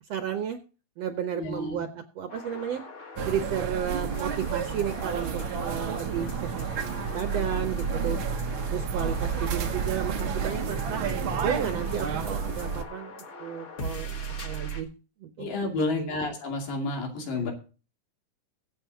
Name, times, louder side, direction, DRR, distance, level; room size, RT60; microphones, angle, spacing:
voice 1, 0.1-0.6 1.0-1.9 2.2-2.8 3.3-6.7 7.1-8.2 8.7-11.0 11.4-13.1 13.4-14.2 14.4-14.9 15.2-15.5 16.0-16.2 17.3-17.5, right 9 dB, 65° right, 6 dB, 1.7 m, -32 dB
voice 2, 1.3-1.8 15.4-17.5, left 2 dB, 80° left, 1 dB, 4.3 m, -30 dB
sound 1, 2.3-14.8, equal, 55° left, 0.8 m, -41 dB
sound 2, 3.2-12.8, right 6 dB, 80° right, 1.1 m, -30 dB
22.5 x 8.0 x 2.8 m, 0.35 s
omnidirectional pair, 3.9 m